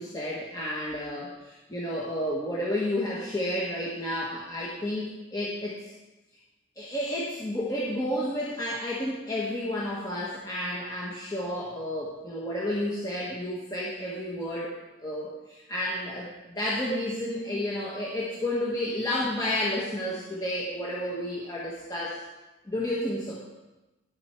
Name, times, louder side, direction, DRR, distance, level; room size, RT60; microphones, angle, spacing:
voice 1, 0.0-5.9 6.8-14.7 15.0-16.3 16.6-22.2 22.7-23.4, left 1 dB, 20° left, -6 dB, 1.4 m, -31 dB
11.0 x 7.7 x 4.5 m, 1.1 s
head